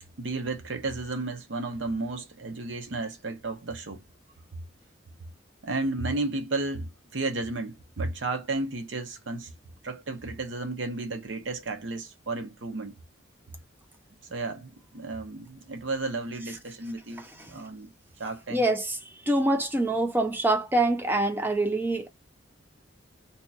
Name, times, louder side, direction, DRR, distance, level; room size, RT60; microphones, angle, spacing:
voice 1, 0.2-4.0 5.6-9.5 9.8-12.9 14.3-17.9 18.2-18.7, right 3 dB, 75° right, 0.7 m, -33 dB
voice 2, 18.5-22.1, right 2 dB, 10° right, 0.3 m, -25 dB
2.8 x 2.3 x 4.0 m
head